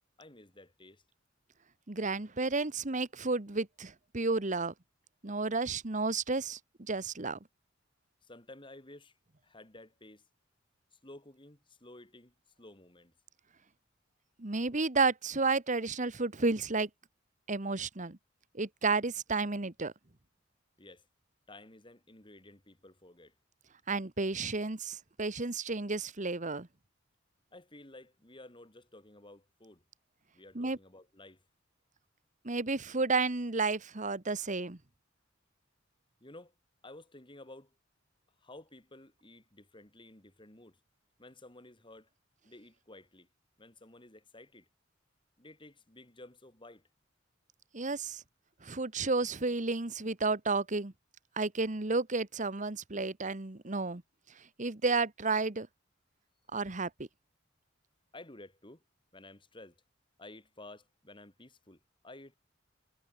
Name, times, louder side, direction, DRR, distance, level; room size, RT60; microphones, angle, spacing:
voice 1, 0.2-1.0 8.2-9.2 9.4-10.3 10.9-13.1 20.8-21.1 21.5-23.3 27.5-29.8 30.3-31.4 36.2-36.5 36.8-37.8 38.4-40.8 41.2-42.1 42.4-43.3 43.6-44.7 45.4-46.9 58.1-58.8 59.1-59.8 60.2-62.3, left 2 dB, 25° left, 3.4 m, -53 dB
voice 2, 1.9-4.7 5.2-7.4 14.4-16.9 17.5-18.2 18.5-19.9 23.9-26.7 30.5-30.8 32.4-34.8 47.7-48.2 48.6-50.9 51.4-54.0 54.6-55.7 56.5-56.9, right 3 dB, 40° right, 1.4 m, -32 dB
head